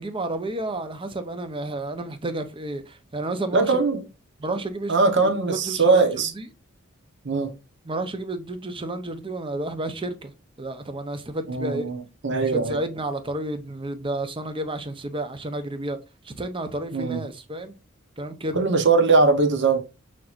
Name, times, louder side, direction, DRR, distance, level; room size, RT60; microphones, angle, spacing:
voice 1, 0.0-3.8 4.4-4.9 5.2-6.1 6.3-6.5 7.8-10.3 10.6-11.9 12.3-16.0 16.2-17.7 18.2-18.6, right 2 dB, 25° right, 0.7 m, -31 dB
voice 2, 3.5-4.0 4.9-6.3 7.2-7.5 11.5-12.8 16.9-17.2 18.5-19.8, right 3 dB, 55° right, 1.0 m, -21 dB
6.4 x 2.9 x 2.5 m
head